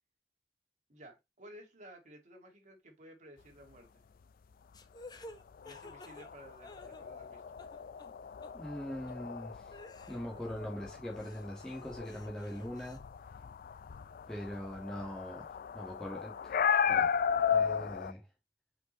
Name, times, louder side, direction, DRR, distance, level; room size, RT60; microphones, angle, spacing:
voice 1, 0.9-4.0 5.6-7.6, equal, 45° right, 2.3 m, -55 dB
sound 1, 4.7-7.3 7.6-8.1 8.4-8.5 9.1-9.2 9.7-10.7 11.1-13.0, left 2 dB, 25° left, 0.8 m, -53 dB
sound 2, 5.6-18.1, left 7 dB, 55° left, 0.4 m, -35 dB
voice 2, 8.5-9.7 10.1-13.0 14.3-17.2 17.5-18.2, equal, 5° left, 1.8 m, -42 dB
6.1 x 5.2 x 3.1 m
head